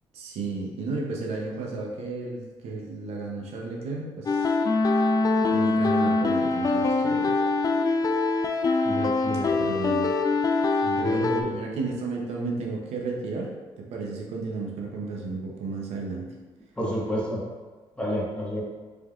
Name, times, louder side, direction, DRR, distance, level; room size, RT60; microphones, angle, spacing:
voice 1, 0.1-4.5 5.5-7.4 9.6-10.1 10.7-13.5 13.8-16.3, right 3 dB, 80° right, -2 dB, 0.7 m, -33 dB
sound 1, 4.3-11.4, left 3 dB, 35° left, 0.4 m, -23 dB
voice 2, 8.8-9.5 10.8-11.5 16.8-17.4 18.0-18.6, equal, 10° left, -5 dB, 1.4 m, -30 dB
5.0 x 3.4 x 2.4 m, 1.3 s
cardioid pair, 85°, 11 cm